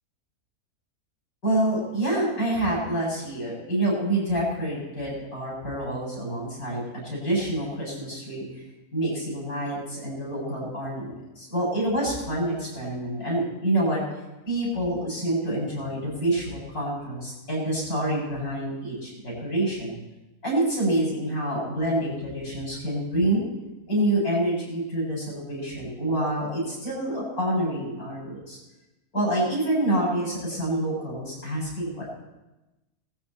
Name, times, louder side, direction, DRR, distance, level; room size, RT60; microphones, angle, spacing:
voice 1, 1.4-8.6 8.9-14.0 14.5-20.0 20.4-23.5 23.9-28.6 29.1-32.0, right 1 dB, 90° left, -5 dB, 8.0 m, -27 dB
19.0 x 14.0 x 4.4 m, 1.0 s
omnidirectional pair, 1.5 m